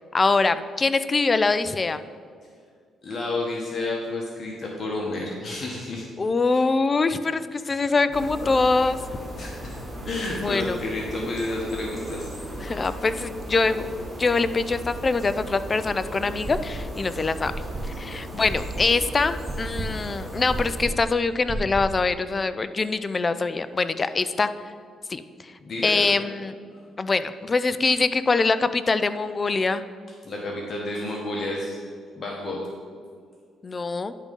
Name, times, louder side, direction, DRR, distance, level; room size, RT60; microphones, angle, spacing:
voice 1, 0.1-2.0 6.2-9.0 10.4-10.8 12.6-13.9 14.2-17.5 17.8-24.5 25.1-25.2 25.8-26.5 27.0-29.8 33.6-34.1, left 3 dB, 30° left, 13 dB, 0.4 m, -23 dB
voice 2, 3.0-6.1 8.4-8.5 9.4-9.7 10.0-12.3 19.9-20.0 25.6-26.2 26.7-26.8 30.2-31.8 32.2-32.6, left 2 dB, 45° left, -2 dB, 1.2 m, -30 dB
sound 1, 8.1-20.9, right 1 dB, 5° right, 1.7 m, -37 dB
sound 2, 16.5-17.0 17.5-22.1, right 1 dB, 25° right, 0.9 m, -33 dB
10.5 x 3.7 x 5.3 m, 2.1 s
cardioid pair, 90°, 0 cm